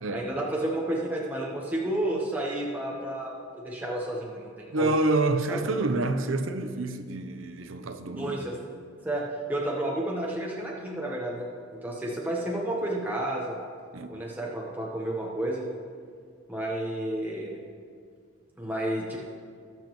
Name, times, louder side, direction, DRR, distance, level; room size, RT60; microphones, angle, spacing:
voice 1, 0.1-4.9 5.5-5.6 8.2-8.6 9.0-13.6 14.1-15.7 16.5-17.6 18.6-19.2, right 1 dB, 10° right, -3 dB, 1.0 m, -31 dB
voice 2, 4.7-8.4 13.9-14.1, right 2 dB, 80° right, 8 dB, 0.7 m, -28 dB
20.0 x 7.4 x 3.1 m, 2.1 s
head